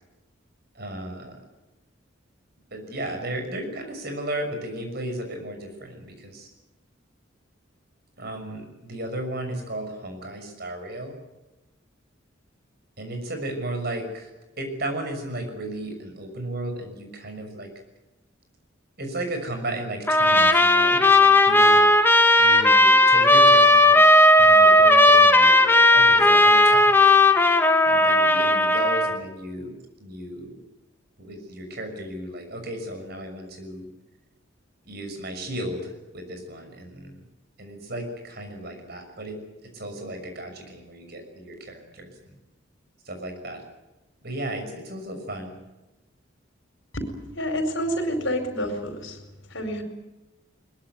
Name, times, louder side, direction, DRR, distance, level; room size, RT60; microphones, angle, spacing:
voice 1, 0.7-1.4 2.7-6.5 8.2-11.2 13.0-14.3 14.6-17.7 19.0-21.8 22.4-24.0 24.4-27.3 27.8-30.6 31.2-33.9 34.9-37.2 37.6-39.4 39.7-42.1 43.0-43.6 44.2-45.6, right 1 dB, 50° right, 5 dB, 6.3 m, -34 dB
Trumpet, 20.1-29.2, left 1 dB, 10° left, 1.7 m, -16 dB
voice 2, 47.3-49.2 49.5-49.8, equal, 70° left, 7 dB, 4.8 m, -28 dB
22.0 x 21.5 x 9.4 m, 1.0 s
head